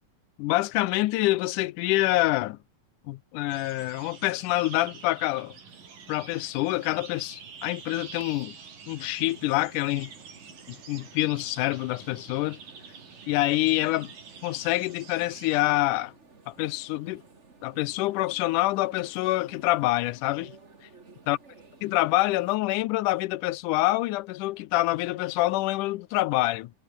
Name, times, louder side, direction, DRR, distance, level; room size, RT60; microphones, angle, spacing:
voice 1, 0.4-2.6 3.1-5.5 6.1-8.6 8.9-10.1 10.7-12.6 13.3-14.1 14.4-16.1 16.5-17.2 17.6-20.6 21.3-21.4 21.8-26.7, left 18 dB, 80° left, 2.1 m, -26 dB
sound 1, 3.5-15.6, right 6 dB, 80° right, 6.1 m, -47 dB
sound 2, 5.7-8.4 9.2-22.6, right 4 dB, 25° right, 2.2 m, -55 dB
omnidirectional pair, 3.8 m